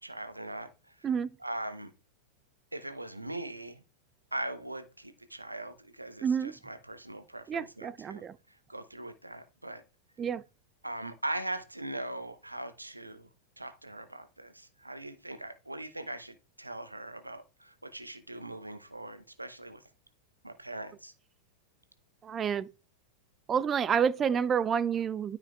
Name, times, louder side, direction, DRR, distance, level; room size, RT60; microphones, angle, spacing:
voice 1, 0.0-1.1 1.4-1.9 2.7-3.8 4.3-9.8 10.8-13.3 13.6-19.8 20.4-21.1, right 1 dB, 85° right, 0.9 m, -40 dB
voice 2, 6.2-6.5 7.5-8.3 10.2-10.4 22.2-22.7 23.5-25.4, right 7 dB, 25° right, 0.3 m, -29 dB
12.5 x 5.2 x 2.4 m
figure-of-eight pair, 90°, 0 cm